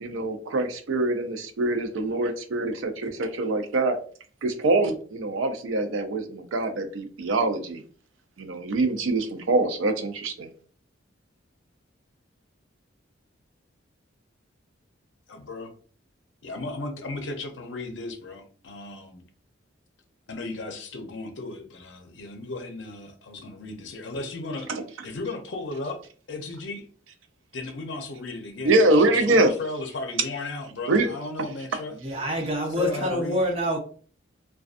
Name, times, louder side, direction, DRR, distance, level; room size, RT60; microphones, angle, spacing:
voice 1, 0.0-4.0 4.4-7.8 8.4-10.5 24.7-24.8 28.6-29.5 30.9-31.1, right 2 dB, 80° right, 0.5 m, -24 dB
voice 2, 15.3-15.7 16.4-19.2 20.3-24.7 25.0-26.0 26.3-26.9 27.5-31.9 32.7-33.4, left 2 dB, 65° left, 0.5 m, -35 dB
voice 3, 32.0-33.8, equal, 30° right, 0.5 m, -26 dB
2.5 x 2.3 x 2.4 m
head